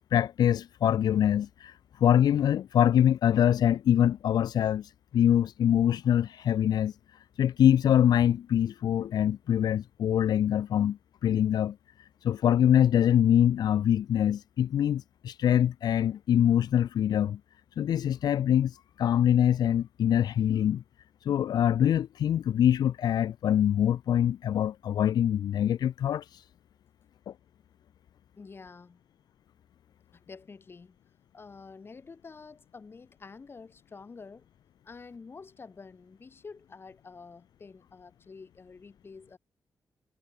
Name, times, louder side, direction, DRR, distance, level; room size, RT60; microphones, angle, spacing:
voice 1, 0.1-6.9 7.4-11.8 12.2-17.4 17.8-20.8 21.2-26.4 27.3-27.4, left 10 dB, 85° left, 0.7 m, -24 dB
voice 2, 28.4-29.0 30.1-31.0 31.3-34.5 34.8-39.4, left 4 dB, 35° left, 6.8 m, -48 dB
wide cardioid pair, 140°, 7 cm